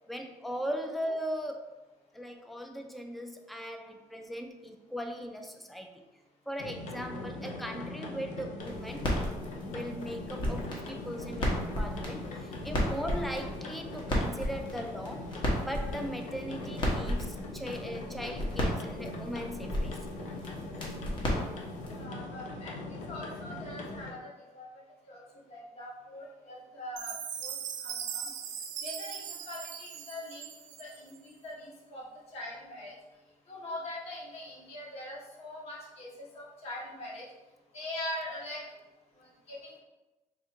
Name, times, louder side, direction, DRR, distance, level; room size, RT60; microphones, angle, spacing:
voice 1, 0.1-1.7 2.1-6.0 6.5-9.2 9.6-11.5 11.8-20.0, equal, ahead, 4 dB, 0.3 m, -39 dB
sound 1, 6.6-24.1, left 2 dB, 70° left, 0.7 m, -41 dB
sound 2, 8.6-22.0, equal, 40° left, 0.9 m, -34 dB
voice 2, 21.9-24.7 25.1-25.2 25.5-27.1 27.4-27.5 27.8-28.3 28.8-30.5 30.8-32.0 32.3-32.9 33.5-37.3 37.7-38.6 39.2-39.8, left 1 dB, 55° left, -4 dB, 1.2 m, -42 dB
Chime, 27.0-31.2, right 8 dB, 85° right, 0.5 m, -39 dB
3.5 x 2.5 x 4.3 m, 1.1 s
cardioid pair, 155°, 13 cm